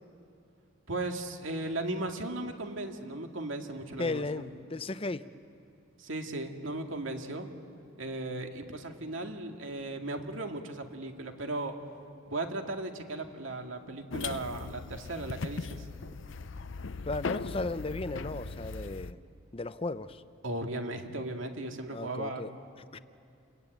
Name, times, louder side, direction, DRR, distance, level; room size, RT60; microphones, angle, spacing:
voice 1, 0.9-4.5 6.0-7.5 8.0-11.8 12.3-15.9 20.4-22.4, right 2 dB, 75° right, 4 dB, 2.2 m, -36 dB
voice 2, 4.0-5.3 17.0-19.2 19.5-20.2 21.9-22.5 22.9-23.0, left 2 dB, 30° left, 13 dB, 0.6 m, -35 dB
sound 1, 14.1-19.1, left 4 dB, 65° left, 0.7 m, -38 dB
29.0 x 21.5 x 9.1 m, 2.4 s
head